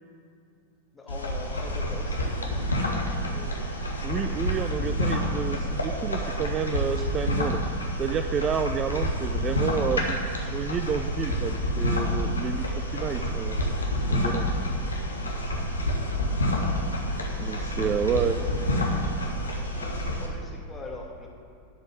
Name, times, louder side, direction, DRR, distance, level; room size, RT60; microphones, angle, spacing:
voice 1, 0.9-3.7 17.8-18.9 19.6-21.3, left 3 dB, 15° left, -1 dB, 2.2 m, -43 dB
sound 1, 1.1-20.3, equal, 75° left, 1.5 m, -28 dB
voice 2, 4.0-7.6 8.0-12.6 12.9-13.6 14.1-14.5 17.4-18.4, right 7 dB, 25° right, 8 dB, 0.4 m, -30 dB
11.0 x 5.3 x 8.1 m, 2.5 s
figure-of-eight pair, 90°, 0 cm